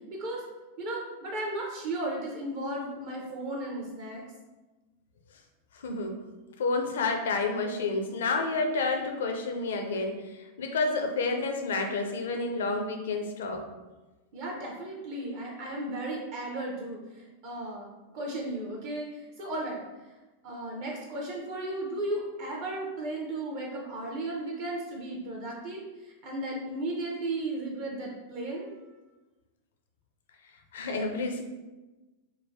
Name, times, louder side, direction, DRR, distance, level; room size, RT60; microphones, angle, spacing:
voice 1, 0.1-0.4 0.8-4.2 14.3-19.8 20.4-28.7, right 1 dB, 50° right, -2 dB, 0.6 m, -35 dB
voice 2, 5.7-6.2 6.6-13.6 30.7-31.4, left 3 dB, 60° left, 4 dB, 0.4 m, -30 dB
3.9 x 2.2 x 2.5 m, 1.2 s
figure-of-eight pair, 90°, 0 cm